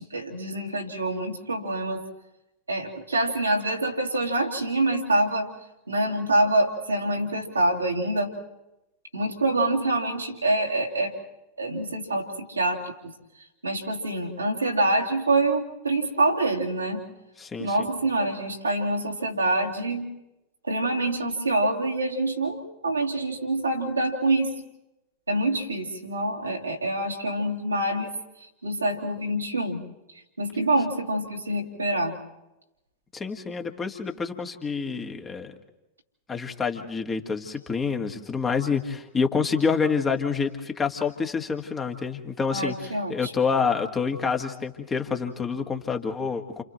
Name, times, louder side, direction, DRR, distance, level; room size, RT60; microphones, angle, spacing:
voice 1, 0.0-2.0 2.7-5.5 5.9-8.3 9.1-11.1 11.6-13.1 13.6-17.0 17.6-20.1 20.7-24.5 25.3-28.1 28.4-29.8 30.4-32.2 42.5-43.3, right 2 dB, 80° right, -2 dB, 2.8 m, -26 dB
voice 2, 17.4-17.7 33.1-35.5 36.3-46.6, left 5 dB, 20° left, 4 dB, 1.6 m, -27 dB
29.5 x 28.5 x 3.1 m, 0.95 s
figure-of-eight pair, 90°, 0 cm